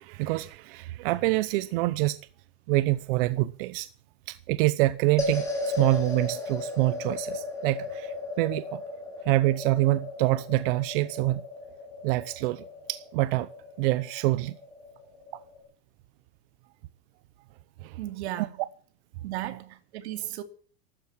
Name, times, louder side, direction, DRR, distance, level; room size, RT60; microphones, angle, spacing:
voice 1, 0.0-2.2 2.7-3.9 4.3-8.8 9.3-11.4 12.0-12.6 12.9-13.5 13.8-14.6 17.8-18.0 18.4-18.5, right 19 dB, 60° right, 0.8 m, -26 dB
sound 1, 5.2-15.6, left 3 dB, 10° left, 6.3 m, -36 dB
voice 2, 18.0-18.6 19.2-20.4, right 14 dB, 85° right, 2.7 m, -35 dB
14.0 x 13.0 x 7.4 m
supercardioid pair, 165°, 32 cm